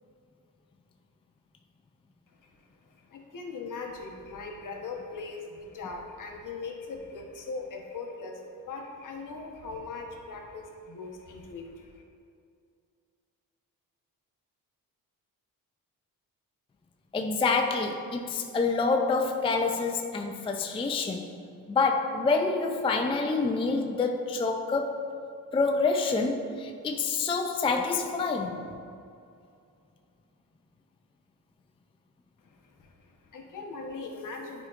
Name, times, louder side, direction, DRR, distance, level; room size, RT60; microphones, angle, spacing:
voice 1, 2.4-12.0 32.4-34.7, left 3 dB, 60° left, 1 dB, 1.0 m, -40 dB
voice 2, 17.1-21.3 21.7-25.0 25.5-28.7, left 4 dB, 15° left, 3 dB, 0.4 m, -27 dB
9.2 x 5.0 x 2.5 m, 2.5 s
cardioid pair, 80°, 36 cm